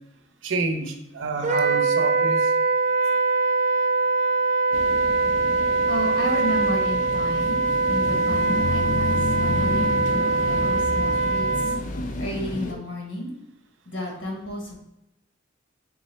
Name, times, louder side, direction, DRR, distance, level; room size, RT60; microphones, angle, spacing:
voice 1, 0.4-2.5 12.7-12.8, right 3 dB, 85° right, 5 dB, 0.6 m, -29 dB
Wind instrument woodwind instrument, 1.4-11.8, right 3 dB, 40° right, 0.3 m, -22 dB
sound 1, 4.7-12.7, left 2 dB, 40° left, 0.4 m, -31 dB
voice 2, 5.9-11.7 12.2-13.3 13.8-14.7, left 1 dB, 80° left, 0 dB, 1.3 m, -32 dB
3.8 x 3.1 x 4.1 m, 0.88 s
head